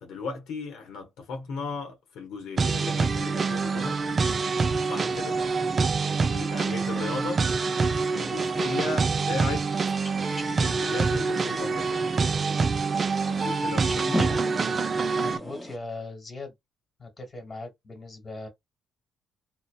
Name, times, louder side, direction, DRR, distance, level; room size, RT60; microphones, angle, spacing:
voice 1, 0.0-4.0 4.8-5.4 6.3-7.4 8.1-9.6 10.6-12.0 13.2-14.3, left 4 dB, 85° left, 0.8 m, -36 dB
sound 1, 2.6-15.4, right 4 dB, 40° right, 0.3 m, -26 dB
sound 2, 7.5-15.8, equal, 5° left, 0.9 m, -39 dB
voice 2, 15.2-16.5 17.0-18.5, left 3 dB, 30° left, 1.4 m, -39 dB
2.6 x 2.1 x 2.3 m
cardioid pair, 90°, 0 cm